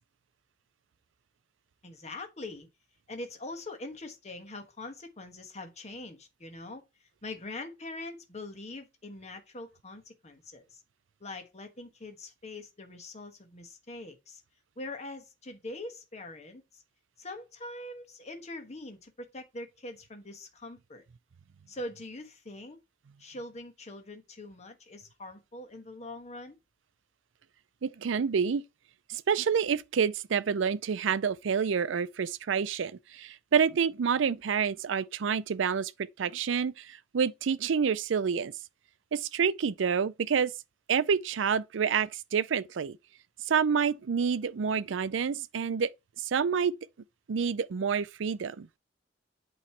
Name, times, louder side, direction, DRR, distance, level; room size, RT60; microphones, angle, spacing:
voice 1, 1.8-2.7 3.1-6.8 7.2-10.8 11.2-14.4 14.8-16.8 17.2-21.0 21.7-22.8 23.2-26.6, left 2 dB, 35° left, 1.2 m, -43 dB
voice 2, 27.8-28.6 29.1-38.5 39.1-40.5 40.9-43.0 43.5-45.9 46.2-46.7 47.3-48.7, right 6 dB, 80° right, 0.4 m, -28 dB
8.5 x 3.1 x 4.5 m
head